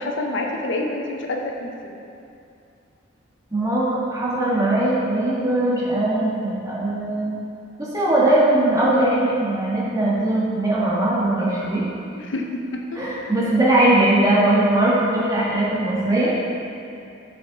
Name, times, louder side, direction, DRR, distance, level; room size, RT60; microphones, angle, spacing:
voice 1, 0.0-2.0 12.2-13.0, left 2 dB, 65° left, 1 dB, 0.6 m, -28 dB
voice 2, 3.5-7.4 7.8-11.8 12.9-16.3, right 1 dB, 15° right, -7 dB, 1.4 m, -20 dB
6.7 x 6.3 x 3.9 m, 2.6 s
head